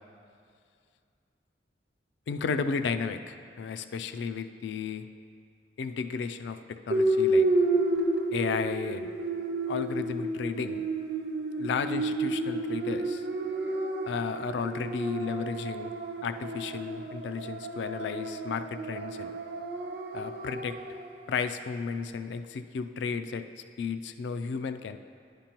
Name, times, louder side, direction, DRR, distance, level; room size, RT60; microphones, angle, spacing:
voice 1, 2.3-5.1 5.8-7.5 8.3-9.1 9.7-10.9 11.6-13.3 14.1-15.9 16.2-19.3 20.1-20.8 21.3-23.4 23.8-25.0, left 5 dB, 75° left, 10 dB, 0.3 m, -33 dB
sound 1, 6.9-21.1, right 2 dB, 65° right, 0.6 m, -30 dB
10.5 x 5.2 x 2.9 m, 2.3 s
head